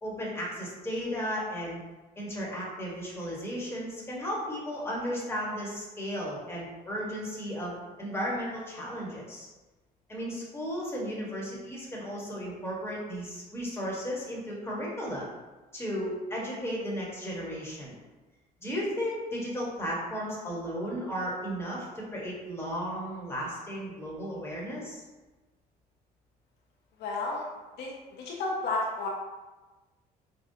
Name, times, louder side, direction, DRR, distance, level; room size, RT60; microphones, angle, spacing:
voice 1, 0.0-1.8 2.2-9.5 10.1-15.2 15.7-17.9 18.6-25.0, equal, 15° left, -5 dB, 1.3 m, -34 dB
voice 2, 27.0-27.4 27.8-27.9 28.2-29.1, left 3 dB, 80° left, -2 dB, 0.7 m, -31 dB
5.2 x 2.3 x 2.7 m, 1.2 s
cardioid pair, 110°, 17 cm